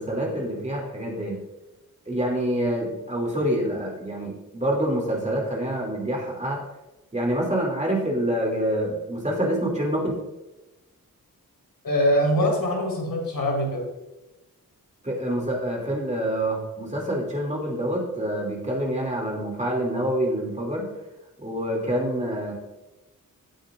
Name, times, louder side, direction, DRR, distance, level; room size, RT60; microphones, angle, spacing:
voice 1, 0.0-1.4 2.1-6.6 7.1-10.1 15.0-20.9 21.4-22.5, right 1 dB, 20° right, -2 dB, 2.7 m, -26 dB
voice 2, 11.8-13.9, equal, 80° left, -2 dB, 4.3 m, -23 dB
16.5 x 8.9 x 2.5 m, 1.0 s
wide cardioid pair, 100°, 34 cm